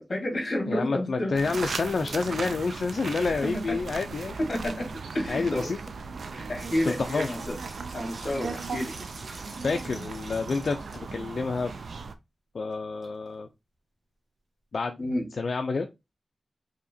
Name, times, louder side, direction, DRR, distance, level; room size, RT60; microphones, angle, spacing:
voice 1, 0.1-1.4 3.4-3.8 4.4-5.7 6.3-7.5 7.9-8.9 15.0-15.3, left 1 dB, 50° left, 3 dB, 1.5 m, -30 dB
voice 2, 0.7-4.4 5.3-5.8 6.8-7.4 9.6-11.7 12.5-13.5 14.7-15.0 15.3-15.9, left 4 dB, 70° left, 5 dB, 0.4 m, -29 dB
sound 1, 1.3-12.1, right 4 dB, 90° right, 0.4 m, -37 dB
sound 2, 6.6-11.1 11.5-11.6 12.7-12.8 13.0-13.1, right 2 dB, 70° right, 1.1 m, -46 dB
4.9 x 2.8 x 2.6 m, 0.23 s
wide cardioid pair, 105°, 0 cm